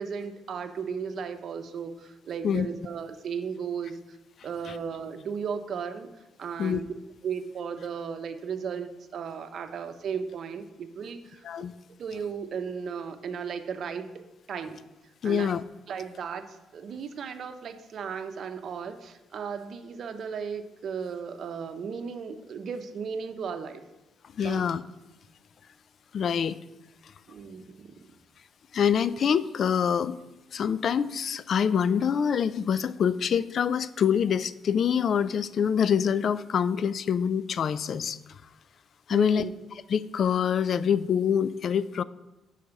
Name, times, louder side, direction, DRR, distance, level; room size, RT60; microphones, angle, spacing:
voice 1, 0.0-4.2 4.4-6.1 6.4-6.9 7.2-11.4 12.0-14.1 14.5-14.8 15.2-15.6 15.9-23.8 24.4-24.6 27.3-27.9 39.1-39.5, right 6 dB, 60° right, 8 dB, 0.7 m, -35 dB
voice 2, 15.2-15.6 24.4-24.8 26.1-26.6 28.7-30.1 30.5-38.4 39.1-42.0, left 7 dB, 55° left, 16 dB, 0.3 m, -25 dB
6.5 x 4.9 x 6.9 m, 1.0 s
cardioid pair, 90°, 0 cm